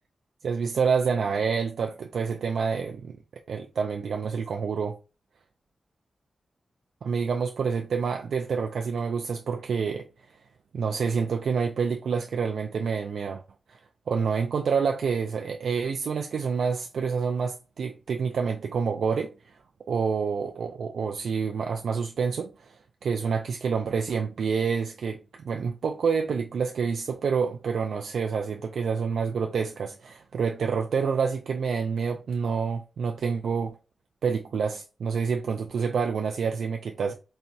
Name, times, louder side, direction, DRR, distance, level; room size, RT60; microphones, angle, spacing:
voice 1, 0.4-3.2 3.5-5.0 7.0-10.1 10.7-13.4 13.7-13.8 14.1-19.6 19.9-33.8 34.2-37.1, right 5 dB, 85° right, 0.3 m, -28 dB
4.1 x 2.2 x 2.6 m
wide cardioid pair, 105°, 0 cm